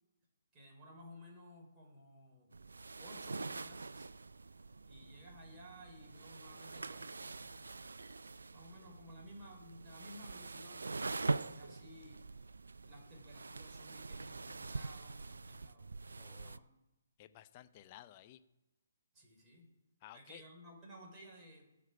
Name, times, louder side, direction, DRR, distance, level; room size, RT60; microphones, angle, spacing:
voice 1, 0.5-2.5 3.0-4.1 4.9-7.6 8.5-12.2 12.8-16.7 19.1-19.7 20.1-21.6, equal, 15° right, -3 dB, 4.1 m, -56 dB
sound 1, 2.5-16.6, right 3 dB, 70° right, 0.4 m, -44 dB
voice 2, 16.2-16.6 17.2-18.4 20.0-20.4, left 13 dB, 30° left, 10 dB, 0.7 m, -56 dB
17.5 x 6.1 x 4.6 m, 0.96 s
figure-of-eight pair, 135°, 0 cm